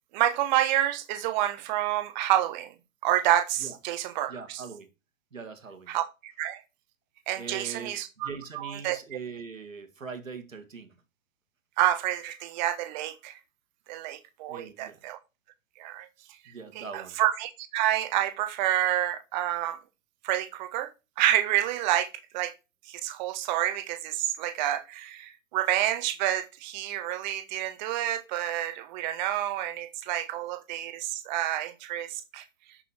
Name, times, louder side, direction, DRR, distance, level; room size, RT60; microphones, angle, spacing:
voice 1, 0.1-2.7 3.0-4.6 5.9-6.6 7.3-9.0 11.8-13.4 13.9-15.2 15.8-16.1 16.7-19.8 20.2-20.9 21.2-22.1 22.3-22.5 22.9-32.4, right 13 dB, 35° right, 1.2 m, -28 dB
voice 2, 4.3-4.9 5.3-5.9 7.4-10.9 14.5-15.0 16.5-17.2, right 5 dB, 75° right, 1.8 m, -41 dB
7.3 x 6.8 x 4.3 m
figure-of-eight pair, 110°, 39 cm